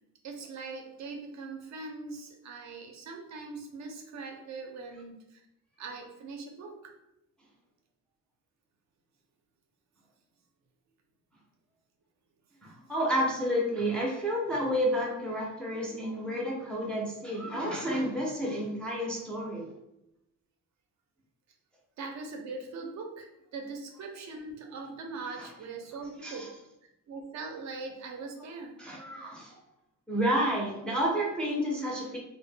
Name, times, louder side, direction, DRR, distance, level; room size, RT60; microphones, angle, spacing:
voice 1, 0.2-5.4 5.8-6.9 22.0-26.5 27.1-28.7, right 3 dB, 60° right, 3 dB, 0.4 m, -41 dB
voice 2, 12.6-19.7 26.2-26.5 28.8-29.6 30.1-32.2, equal, 5° left, -4 dB, 0.3 m, -30 dB
2.1 x 2.0 x 3.3 m, 0.86 s
cardioid pair, 170°, 31 cm